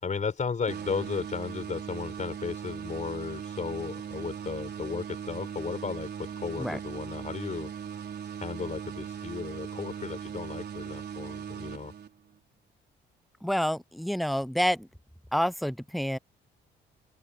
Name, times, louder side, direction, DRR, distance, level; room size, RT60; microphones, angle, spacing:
voice 1, 0.0-7.7 8.4-11.9, left 5 dB, 40° left, 4.4 m, -35 dB
sound 1, 0.7-12.4, right 8 dB, 55° right, 4.2 m, -39 dB
voice 2, 13.4-14.9 15.3-16.2, equal, ahead, 0.5 m, -28 dB
open air
cardioid pair, 90°, 20 cm